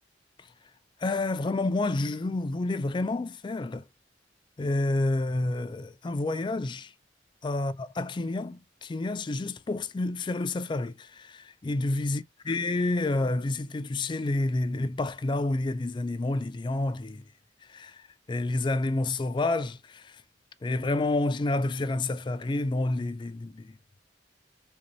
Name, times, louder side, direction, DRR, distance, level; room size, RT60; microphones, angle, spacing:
voice 1, 1.0-3.8 4.6-6.9 7.4-17.2 17.7-20.2 20.6-23.8, left 2 dB, 25° left, 0.3 m, -29 dB
3.5 x 2.6 x 3.0 m
head